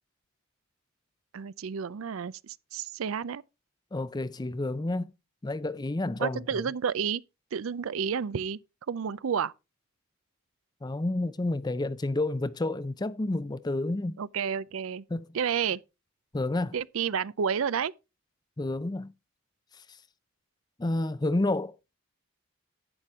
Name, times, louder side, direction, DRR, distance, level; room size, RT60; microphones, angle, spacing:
voice 1, 1.3-3.4 6.2-7.2 7.5-8.6 8.9-9.5 14.2-15.0 15.3-15.8 16.7-17.9, right 7 dB, 75° right, 0.5 m, -30 dB
voice 2, 3.9-5.1 5.4-6.7 10.8-14.2 15.1-15.3 16.3-16.8 18.6-19.1 20.8-21.8, left 2 dB, 20° left, 0.5 m, -30 dB
11.0 x 9.0 x 3.5 m
head